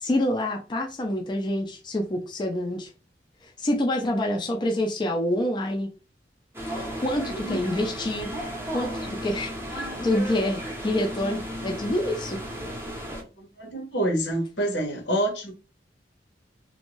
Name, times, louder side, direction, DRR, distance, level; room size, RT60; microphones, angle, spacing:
voice 1, 0.0-2.9 3.6-5.9 6.7-8.3 8.7-12.4, left 1 dB, 25° left, 0.4 m, -27 dB
sound 1, 6.5-13.2, equal, 15° right, 0.6 m, -34 dB
voice 2, 13.4-15.5, right 1 dB, 85° left, 1.1 m, -27 dB
2.6 x 2.2 x 3.0 m
head